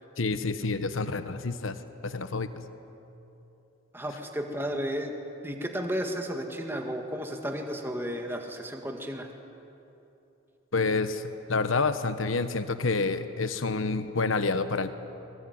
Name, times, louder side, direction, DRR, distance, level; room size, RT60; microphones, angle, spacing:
voice 1, 0.2-1.8 2.0-2.5 10.7-14.9, left 3 dB, 85° left, 11 dB, 1.2 m, -28 dB
voice 2, 3.9-5.1 5.4-9.3, equal, 10° right, 3 dB, 1.9 m, -33 dB
24.5 x 21.0 x 9.5 m, 2.9 s
head